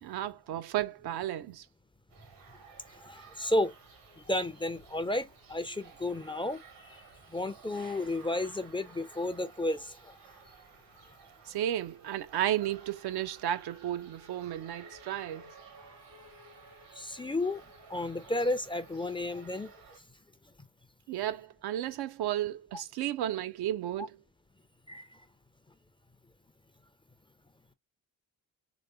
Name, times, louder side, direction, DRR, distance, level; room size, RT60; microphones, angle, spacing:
voice 1, 0.0-1.7 11.5-15.5 21.1-24.2, right 12 dB, 60° right, 0.5 m, -33 dB
sound 1, 2.1-20.0, right 4 dB, 75° right, 1.3 m, -55 dB
voice 2, 3.0-3.7 4.3-6.6 7.3-10.1 17.0-17.6 17.9-19.7 24.9-25.0, left 1 dB, 10° left, 0.5 m, -32 dB
3.2 x 3.0 x 2.5 m
hypercardioid pair, 40°, 45 cm